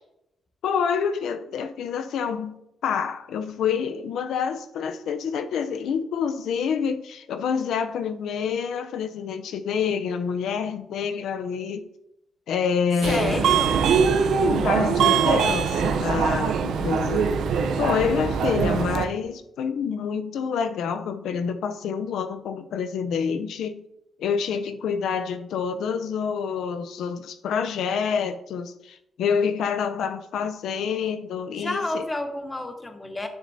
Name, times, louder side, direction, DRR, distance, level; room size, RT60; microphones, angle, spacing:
voice 1, 0.6-2.6 2.8-11.9 12.5-13.5 14.4-17.3 17.8-23.8 24.2-32.0, left 6 dB, 90° left, 9 dB, 0.5 m, -27 dB
Subway metro underground, 13.0-19.1, right 6 dB, 75° right, 0.6 m, -22 dB
voice 2, 13.1-13.8 31.5-33.3, left 1 dB, 15° left, 7 dB, 0.7 m, -30 dB
9.7 x 6.5 x 2.7 m, 0.83 s
wide cardioid pair, 175°, 0 cm